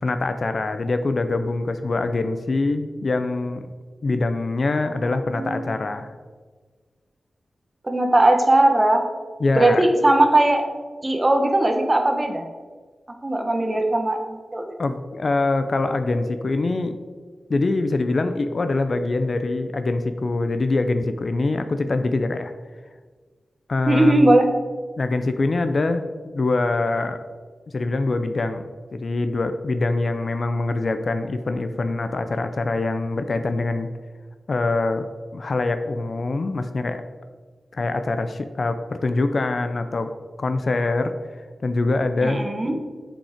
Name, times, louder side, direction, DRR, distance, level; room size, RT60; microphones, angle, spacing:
voice 1, 0.0-3.7 4.0-6.1 9.4-9.9 14.8-17.0 17.5-22.5 23.7-24.3 25.0-26.1 26.3-27.2 27.7-28.6 28.9-33.9 34.5-37.0 37.7-40.1 40.4-41.1 41.6-42.4, left 3 dB, 50° left, 8 dB, 0.5 m, -24 dB
voice 2, 4.8-5.7 7.8-9.0 9.6-10.7 11.0-12.5 13.2-14.6 23.9-24.5 42.2-42.7, right 1 dB, 25° right, 4 dB, 1.0 m, -19 dB
8.7 x 5.3 x 5.0 m, 1.4 s
wide cardioid pair, 115°, 0 cm